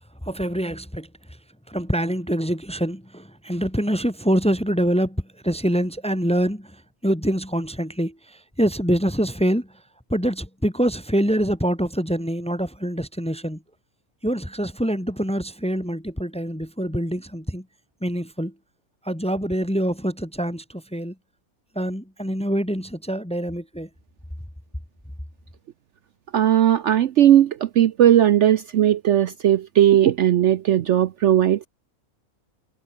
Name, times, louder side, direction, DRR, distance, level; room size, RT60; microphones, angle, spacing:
voice 1, 0.2-1.1 1.7-6.7 7.0-9.7 10.1-13.6 14.2-17.6 18.0-18.5 19.0-21.1 21.7-23.9, equal, 5° left, 1.0 m, -25 dB
voice 2, 26.3-31.7, right 11 dB, 60° right, 0.8 m, -17 dB
omnidirectional pair, 1.5 m